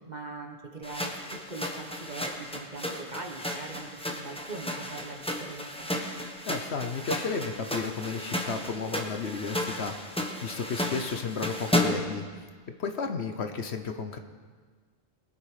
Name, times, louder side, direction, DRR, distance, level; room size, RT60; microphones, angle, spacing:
voice 1, 0.1-5.9, right 3 dB, 35° right, 3 dB, 1.2 m, -41 dB
sound 1, 0.8-12.2, left 1 dB, 5° left, 1.1 m, -33 dB
voice 2, 6.5-12.2 12.8-14.2, left 5 dB, 60° left, 7 dB, 1.1 m, -33 dB
21.5 x 8.6 x 4.9 m, 1.5 s
omnidirectional pair, 1.3 m